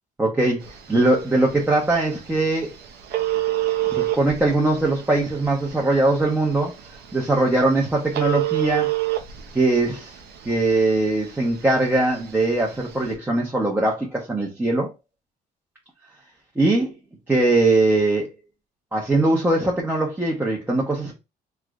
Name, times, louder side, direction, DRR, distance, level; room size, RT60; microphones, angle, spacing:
voice 1, 0.2-2.7 3.9-6.7 7.1-9.0 9.5-10.2 10.4-14.9 16.6-16.9 17.3-18.3 18.9-21.1, right 2 dB, 10° right, 0.8 m, -21 dB
Telephone, 0.6-13.1, right 15 dB, 75° right, 0.7 m, -30 dB
3.3 x 3.0 x 2.4 m
cardioid pair, 110°, 17 cm